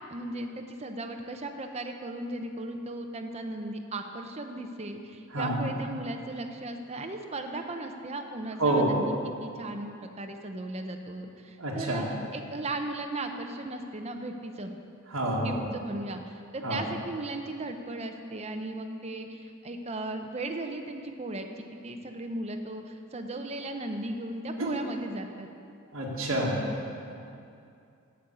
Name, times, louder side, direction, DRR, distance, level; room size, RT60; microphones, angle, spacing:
voice 1, 0.1-9.1 9.4-12.0 12.3-14.7 15.3-25.5, right 2 dB, 30° right, 4 dB, 0.7 m, -36 dB
voice 2, 5.3-5.7 8.6-8.9 11.6-12.0 15.1-15.6 16.6-16.8 24.6-24.8 25.9-26.6, right 1 dB, 70° right, -4 dB, 1.9 m, -28 dB
8.6 x 7.0 x 7.8 m, 2.5 s
head